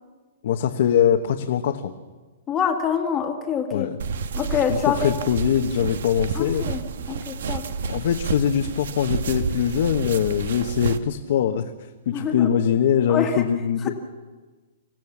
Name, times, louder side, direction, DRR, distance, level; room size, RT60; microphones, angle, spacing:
voice 1, 0.4-1.9 3.7-4.0 4.7-6.7 7.8-11.7 12.1-13.9, left 9 dB, 55° left, 4 dB, 1.1 m, -22 dB
voice 2, 2.5-3.9 4.4-5.1 6.3-7.7 12.1-12.5 13.1-13.4 13.8-13.9, left 7 dB, 15° left, 2 dB, 1.8 m, -26 dB
sound 1, 4.0-11.0, right 5 dB, 70° right, 1.3 m, -30 dB
26.0 x 15.5 x 7.3 m, 1.3 s
hypercardioid pair, 165°, 0 cm